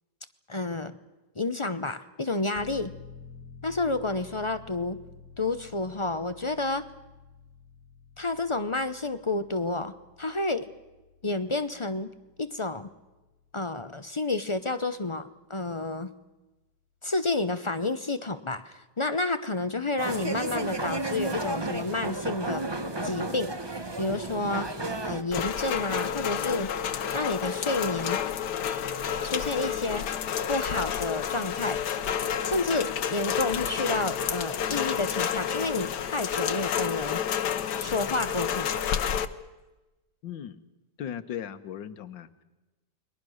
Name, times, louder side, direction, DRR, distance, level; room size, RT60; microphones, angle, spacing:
voice 1, 0.5-0.9 1.4-2.9 3.6-5.0 5.4-6.9 8.2-10.7 11.2-12.1 12.4-12.9 13.5-16.1 17.0-22.6 23.0-23.5 24.0-24.7 25.0-26.7 27.1-28.2 29.2-30.1 30.5-31.8 32.4-37.2 37.8-38.8, left 2 dB, 45° left, 10 dB, 0.3 m, -30 dB
sound 1, 2.5-15.1 15.4-15.5, left 4 dB, 55° right, 4.4 m, -51 dB
sound 2, 20.0-25.2, right 2 dB, 15° right, 1.1 m, -32 dB
Rain, 25.3-39.3, left 8 dB, 70° left, 1.6 m, -30 dB
voice 2, 40.2-40.6 41.0-42.4, left 9 dB, 90° left, 12 dB, 1.7 m, -37 dB
30.0 x 22.0 x 6.4 m, 1.1 s
omnidirectional pair, 1.9 m